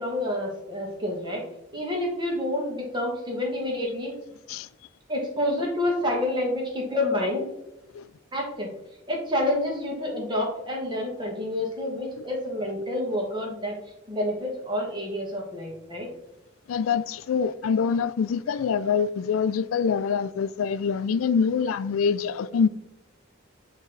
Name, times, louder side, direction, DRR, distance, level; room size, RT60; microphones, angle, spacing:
voice 1, 0.0-1.4 1.7-4.1 5.1-7.4 8.3-8.7 9.1-13.8 14.1-16.1, left 1 dB, 25° right, 1.4 m, -28 dB
voice 2, 16.7-22.7, left 6 dB, 90° left, 0.4 m, -25 dB
8.4 x 3.1 x 4.0 m
head